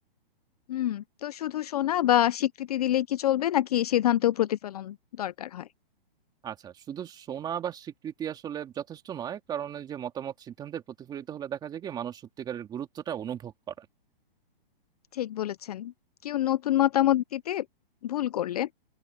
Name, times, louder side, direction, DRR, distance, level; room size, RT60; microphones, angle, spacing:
voice 1, 0.7-5.7 15.1-15.9 16.2-17.6 18.0-18.7, left 12 dB, 40° left, 0.6 m, -26 dB
voice 2, 6.4-13.9, right 9 dB, 15° right, 2.5 m, -36 dB
open air
hypercardioid pair, 155°, 29 cm